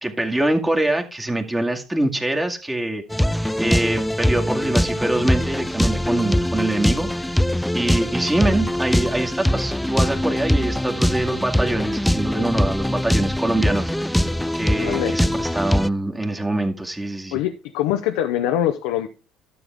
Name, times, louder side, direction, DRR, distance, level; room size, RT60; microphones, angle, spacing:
voice 1, 0.0-7.4 7.7-14.1 14.5-17.4, right 1 dB, 10° right, 3 dB, 2.2 m, -24 dB
sound 1, 3.1-15.9, left 1 dB, 5° left, 0.4 m, -22 dB
voice 2, 14.8-15.1 17.3-19.1, left 12 dB, 75° left, 6 dB, 0.7 m, -23 dB
12.5 x 7.0 x 3.5 m, 0.33 s
hypercardioid pair, 65°, 0 cm